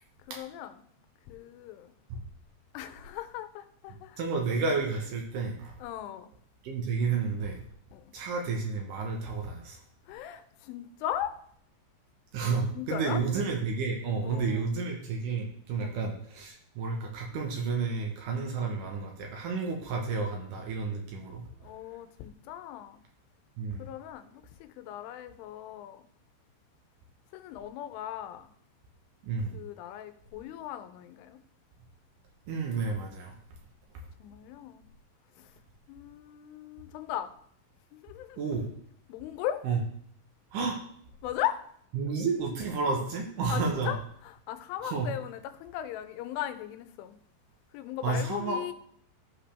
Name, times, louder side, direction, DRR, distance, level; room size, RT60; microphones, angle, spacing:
voice 1, 0.3-0.7 1.3-1.9 2.7-4.2 5.8-6.3 7.9-8.1 10.1-11.4 12.7-13.2 14.2-14.7 15.8-16.1 21.6-23.0 23.8-26.1 27.3-28.5 29.5-31.4 34.2-34.9 35.4-35.6 35.9-37.3 37.9-38.4 39.1-39.6 41.2-41.6 43.5-47.2 47.7-48.7, left 12 dB, 90° left, 10 dB, 3.2 m, -38 dB
voice 2, 4.2-5.7 6.6-7.6 8.1-9.8 12.3-21.4 23.6-23.8 29.2-29.6 32.5-33.4 38.4-38.7 39.6-39.8 40.5-40.8 41.9-43.9 44.8-45.1 48.0-48.7, right 4 dB, 85° right, 1 dB, 1.9 m, -31 dB
14.5 x 5.1 x 3.4 m, 0.64 s
omnidirectional pair, 5.5 m